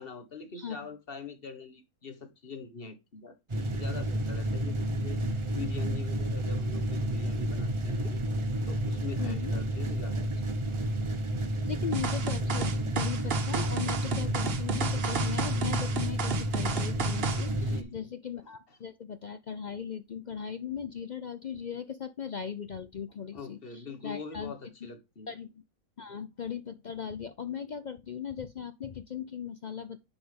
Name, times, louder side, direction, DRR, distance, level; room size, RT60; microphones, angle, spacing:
voice 1, 0.0-8.2 8.6-10.3 10.8-10.9 17.6-18.1 23.3-25.4 26.1-26.2, left 5 dB, 45° left, 1.5 m, -43 dB
voice 2, 0.5-0.9 9.2-9.5 11.6-24.5 25.3-25.5 26.0-30.0, left 7 dB, 65° left, 0.4 m, -38 dB
sound 1, 3.5-17.8, right 1 dB, 25° right, 0.7 m, -31 dB
sound 2, 11.9-17.5, right 4 dB, 50° right, 1.1 m, -33 dB
9.8 x 5.0 x 3.5 m
omnidirectional pair, 1.5 m